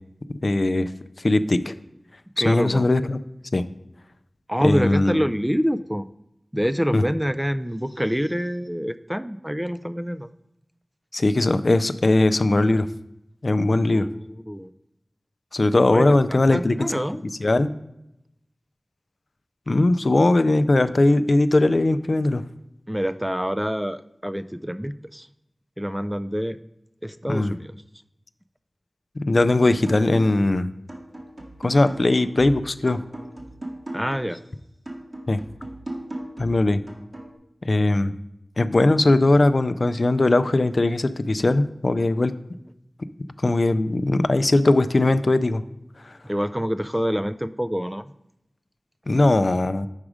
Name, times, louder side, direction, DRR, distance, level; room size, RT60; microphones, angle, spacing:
voice 1, 0.3-0.9 1.2-1.7 2.5-3.2 3.5-3.6 4.6-5.2 6.9-7.0 11.1-12.9 13.4-14.1 15.5-16.9 17.4-17.7 19.7-22.4 27.3-27.5 29.2-30.7 31.6-33.0 35.3-35.4 36.4-36.8 37.6-38.1 38.6-42.3 43.4-45.6 49.1-49.9, left 2 dB, 65° left, 12 dB, 0.4 m, -19 dB
voice 2, 2.4-2.9 4.5-6.1 6.5-10.3 13.9-14.7 15.9-17.2 22.9-25.3 25.8-26.6 27.0-27.8 33.9-34.4 46.2-48.1, equal, 10° right, 11 dB, 0.3 m, -26 dB
sound 1, 29.6-30.5 30.9-34.4 34.9-37.4, right 1 dB, 55° right, 1.7 m, -38 dB
7.2 x 4.9 x 4.9 m, 0.84 s
wide cardioid pair, 40°, 0 cm